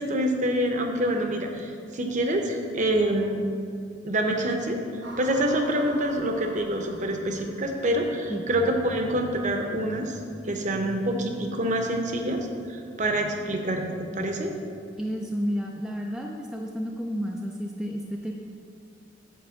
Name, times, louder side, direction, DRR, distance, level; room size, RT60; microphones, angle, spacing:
voice 1, 0.0-3.5 4.0-4.8 5.2-10.2 10.5-14.5, right 1 dB, 40° right, 3 dB, 0.8 m, -26 dB
Sometimes i Scare Myself, 5.0-8.3, right 2 dB, 70° right, 1.1 m, -44 dB
voice 2, 15.0-18.3, equal, 5° right, -1 dB, 0.3 m, -31 dB
9.4 x 3.3 x 6.8 m, 2.3 s
head